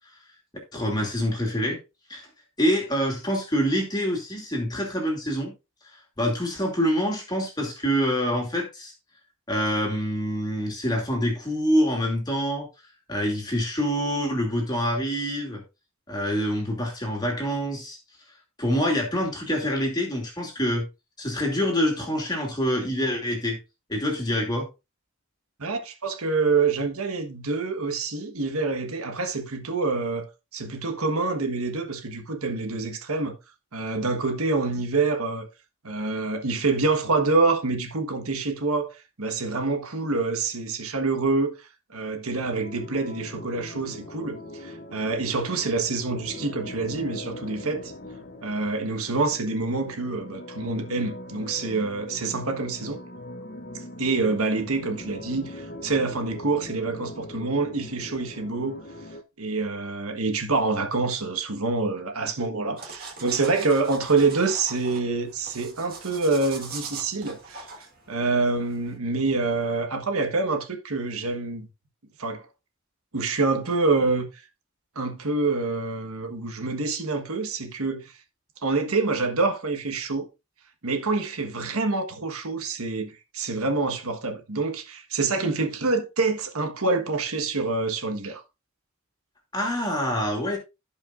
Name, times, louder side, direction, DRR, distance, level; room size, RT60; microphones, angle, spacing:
voice 1, 0.7-1.8 2.1-2.3 2.6-5.5 6.2-8.9 9.5-12.7 13.1-15.6 16.1-18.0 18.6-20.9 21.2-23.6 23.9-24.7 89.5-90.6, equal, 20° left, 2.6 m, -26 dB
voice 2, 25.6-30.3 30.5-33.4 33.7-35.5 35.8-41.6 41.9-47.9 48.4-53.0 54.0-58.8 59.4-71.7 72.2-72.5 73.1-74.3 74.9-78.1 78.6-80.3 80.8-88.4, right 3 dB, 80° right, 1.4 m, -26 dB
sound 1, 42.4-59.2, left 1 dB, 40° left, 0.8 m, -41 dB
sound 2, 62.8-69.0, right 4 dB, 40° right, 1.8 m, -42 dB
16.0 x 5.4 x 2.5 m
head